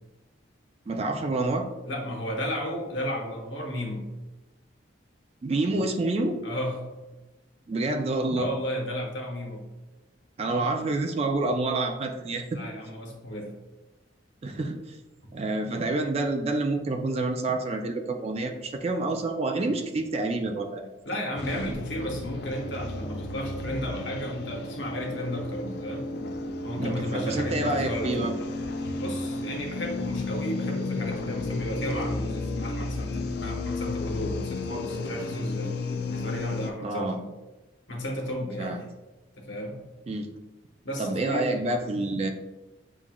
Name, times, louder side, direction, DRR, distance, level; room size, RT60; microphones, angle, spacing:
voice 1, 0.9-1.7 5.4-6.4 7.7-8.5 10.4-12.6 14.4-15.0 15.3-21.2 26.8-28.4 36.8-37.2 38.6-38.8 40.1-40.3 41.0-42.3, right 2 dB, 35° right, 5 dB, 0.3 m, -28 dB
voice 2, 1.9-4.1 6.4-6.9 8.4-9.6 12.5-13.5 21.0-26.1 26.6-28.3 29.0-35.7 36.1-37.3 37.9-38.7 39.4-39.8 40.8-41.7, equal, 75° left, 1 dB, 0.9 m, -33 dB
sound 1, 21.4-36.7, left 3 dB, 60° left, 0.4 m, -33 dB
7.0 x 2.4 x 2.2 m, 1.1 s
head